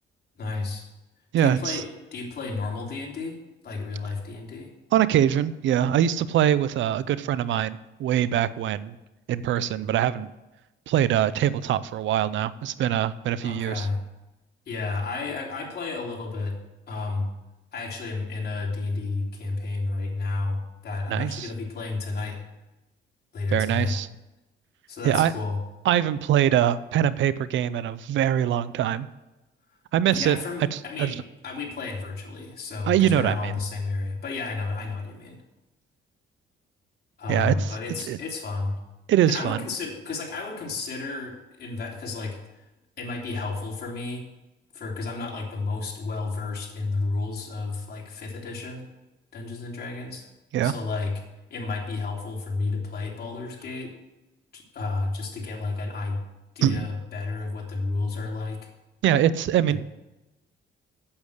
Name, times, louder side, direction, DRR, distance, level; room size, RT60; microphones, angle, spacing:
voice 1, 0.4-0.9 1.4-1.9 2.1-3.4 3.6-4.7 13.4-14.0 14.7-16.6 16.9-17.3 17.7-22.4 23.3-24.0 24.9-25.6 30.1-35.4 37.2-38.7 39.3-42.4 43.0-44.2 44.7-48.8 49.3-50.3 50.6-51.2 51.5-53.9 54.5-56.2 56.5-58.6 59.7-59.8, left 3 dB, 55° left, -1 dB, 3.3 m, -31 dB
voice 2, 1.3-1.8 4.9-9.0 9.3-10.3 10.9-13.9 21.1-21.5 23.5-24.1 25.0-25.3 25.8-29.1 29.9-30.4 30.7-31.1 32.9-33.5 37.3-37.8 38.1-38.2 39.1-39.6 50.5-50.7 56.6-56.9 59.0-59.8, right 10 dB, 75° right, 16 dB, 0.6 m, -23 dB
8.7 x 8.2 x 8.0 m, 1.0 s
cardioid pair, 90°, 20 cm